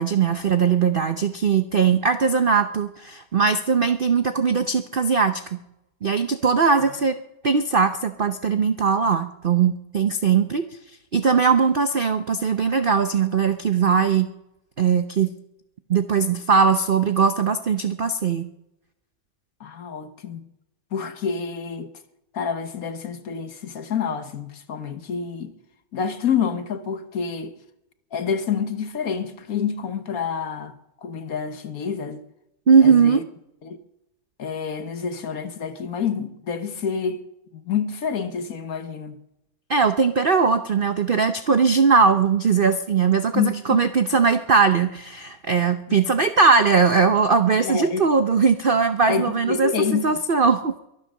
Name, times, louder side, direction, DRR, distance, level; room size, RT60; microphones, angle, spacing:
voice 1, 0.0-5.6 6.0-7.2 7.4-10.7 11.1-14.3 14.8-15.3 15.9-18.5 32.7-33.2 39.7-50.7, right 5 dB, 75° right, 0.5 m, -20 dB
voice 2, 19.6-20.4 20.9-21.9 22.3-25.5 25.9-27.6 28.1-30.7 31.0-32.2 32.8-33.2 33.6-33.8 34.4-37.2 37.5-39.2 43.3-43.8 45.9-46.0 47.6-48.1 49.1-50.0, left 6 dB, 55° left, 1.4 m, -28 dB
23.0 x 9.7 x 6.5 m
omnidirectional pair, 2.0 m